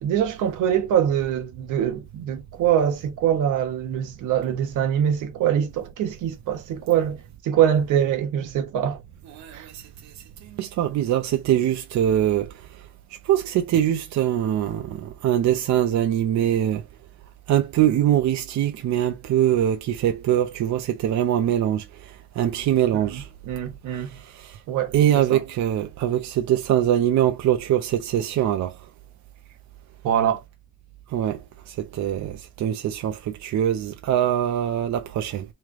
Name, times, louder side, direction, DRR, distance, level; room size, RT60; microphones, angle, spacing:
voice 1, 0.0-7.2 7.4-9.0 9.5-9.7 22.9-24.1 24.7-24.9 25.3-25.4 30.0-30.4, right 9 dB, 85° right, 1.1 m, -23 dB
voice 2, 10.6-12.5 13.3-14.8 15.2-16.8 17.5-21.8 22.4-23.2 24.9-28.7 31.1-31.4 32.0-32.3 32.6-33.1 33.4-35.4, right 11 dB, 65° right, 0.6 m, -22 dB
3.2 x 3.2 x 3.6 m
cardioid pair, 90°, 30 cm